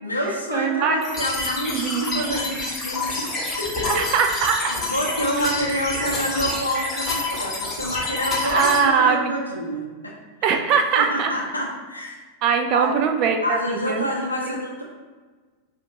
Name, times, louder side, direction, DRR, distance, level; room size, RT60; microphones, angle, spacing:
voice 1, 0.0-3.9 4.7-10.1 10.4-10.6 11.0-12.2 12.7-13.1 13.4-14.8, equal, 85° left, -2 dB, 0.6 m, -27 dB
voice 2, 0.5-1.0 1.7-2.4 3.8-4.6 8.4-9.3 10.4-11.3 12.4-14.0, right 6 dB, 40° right, 4 dB, 0.3 m, -21 dB
sound 1, 1.0-8.8, left 2 dB, 20° left, 0.9 m, -28 dB
4.9 x 2.5 x 2.8 m, 1.4 s
figure-of-eight pair, 90°, 0 cm